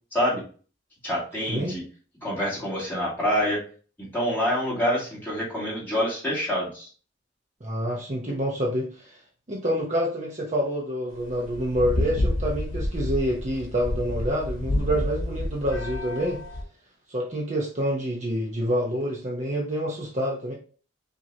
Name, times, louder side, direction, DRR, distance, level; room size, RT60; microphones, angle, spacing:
voice 1, 0.1-0.4 1.0-1.8 2.2-3.6 4.0-6.9, equal, 10° left, -7 dB, 2.4 m, -26 dB
voice 2, 7.6-9.2 9.5-16.4 17.1-20.5, equal, 35° right, -2 dB, 0.9 m, -27 dB
sound 1, 11.2-16.6, left 1 dB, 60° left, 1.0 m, -29 dB
6.0 x 2.8 x 2.8 m, 0.39 s
head